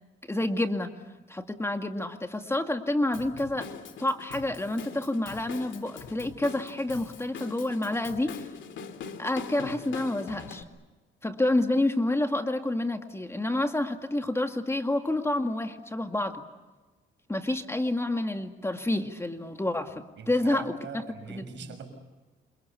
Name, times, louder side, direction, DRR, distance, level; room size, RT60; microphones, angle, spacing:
voice 1, 0.3-0.9 1.3-3.7 4.0-8.5 9.2-10.6 11.2-16.4 17.3-21.0 21.3-21.8, left 1 dB, 15° left, 5 dB, 2.1 m, -29 dB
Drum kit / Drum, 3.1-10.6, left 6 dB, 70° left, 2.6 m, -42 dB
voice 2, 20.2-21.8, right 6 dB, 70° right, 6 dB, 6.4 m, -41 dB
28.0 x 27.0 x 7.0 m, 1.2 s
cardioid pair, 90°, 20 cm